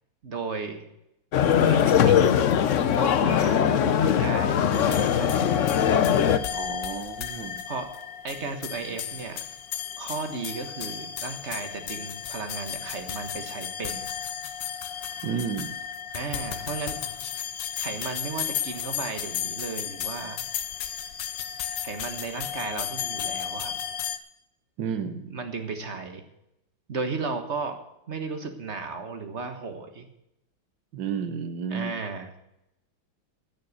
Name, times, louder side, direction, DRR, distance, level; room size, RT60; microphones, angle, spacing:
voice 1, 0.2-0.8 1.6-2.2 3.0-3.6 4.0-5.6 7.7-7.9 8.2-9.4 10.0-14.1 16.1-17.0 17.8-20.4 21.8-23.7 25.2-26.2 26.9-27.8 28.1-30.1 31.7-32.3, right 4 dB, 35° right, 6 dB, 1.5 m, -34 dB
sound 1, 1.3-6.4, left 8 dB, 85° left, 0.6 m, -21 dB
sound 2, 4.7-24.2, left 9 dB, 65° left, 1.4 m, -34 dB
voice 2, 6.5-7.5 15.2-15.8 24.8-25.3 30.9-31.9, right 6 dB, 65° right, 8 dB, 1.6 m, -32 dB
14.5 x 6.5 x 8.2 m, 0.84 s
omnidirectional pair, 2.3 m